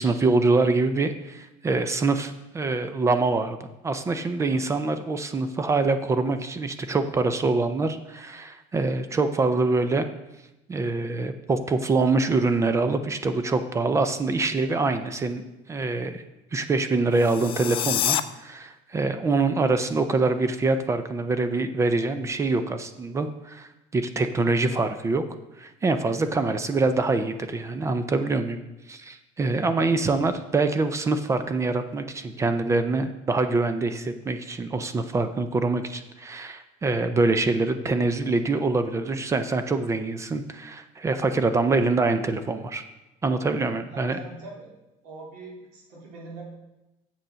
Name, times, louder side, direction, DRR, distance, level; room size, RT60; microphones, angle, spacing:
voice 1, 0.0-3.6 3.8-10.1 10.7-15.4 15.7-16.2 16.5-25.2 25.6-28.6 28.9-42.8 43.2-44.2, right 3 dB, 20° right, 10 dB, 0.5 m, -25 dB
sound 1, 17.1-18.2, left 11 dB, 35° left, 0.4 m, -26 dB
voice 2, 43.9-44.7 45.0-46.4, right 3 dB, 85° right, -3 dB, 3.4 m, -42 dB
7.6 x 6.6 x 5.6 m, 0.96 s
cardioid pair, 145°, 15 cm